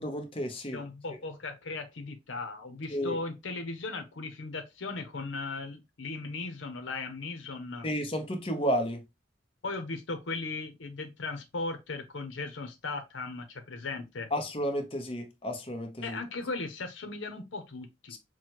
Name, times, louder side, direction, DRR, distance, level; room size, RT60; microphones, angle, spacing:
voice 1, 0.0-0.8 2.9-3.2 7.8-9.0 14.3-16.2 18.1-18.2, equal, 30° left, 0.8 m, -32 dB
voice 2, 0.7-7.9 9.6-14.3 16.0-18.2, left 3 dB, 90° left, 0.8 m, -37 dB
6.0 x 2.2 x 3.0 m
head